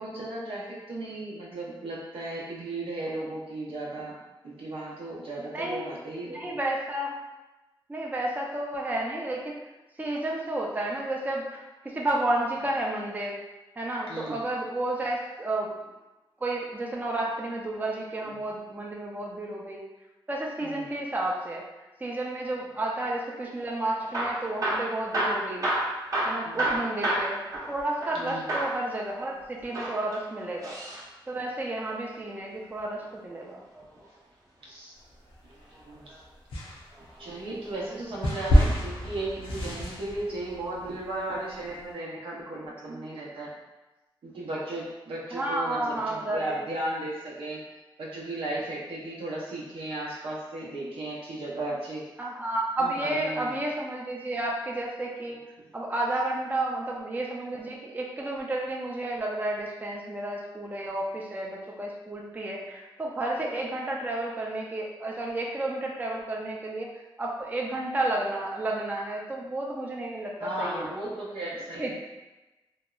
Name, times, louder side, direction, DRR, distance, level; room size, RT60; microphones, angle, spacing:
voice 1, 0.0-4.2 4.4-6.6 14.1-14.4 18.2-18.3 20.6-20.9 26.4-26.8 28.1-28.5 34.7-34.9 35.9-36.1 37.2-43.5 44.2-47.6 48.0-52.1 52.8-53.5 70.4-71.9, right 2 dB, 80° right, -5 dB, 0.6 m, -35 dB
voice 2, 6.3-7.1 7.9-9.6 10.0-13.4 13.8-15.7 16.4-19.8 20.3-21.6 22.0-25.7 26.2-27.4 27.7-30.8 31.3-33.6 45.3-46.6 52.2-55.4 55.7-66.9 67.2-70.9 71.8-71.9, right 1 dB, 20° right, -2 dB, 0.4 m, -31 dB
Hammer / Drill, 24.0-28.2 28.5-28.8 29.6-31.0 32.8-34.0 35.7-36.2 36.9-37.7 38.4-38.7 39.0-39.1 39.7-39.8, right 1 dB, 40° right, 0.8 m, -30 dB
sound 1, 35.1-35.9 36.5-41.8, equal, 85° left, 0.5 m, -27 dB
2.8 x 2.0 x 2.3 m, 1.1 s
cardioid pair, 60°, 9 cm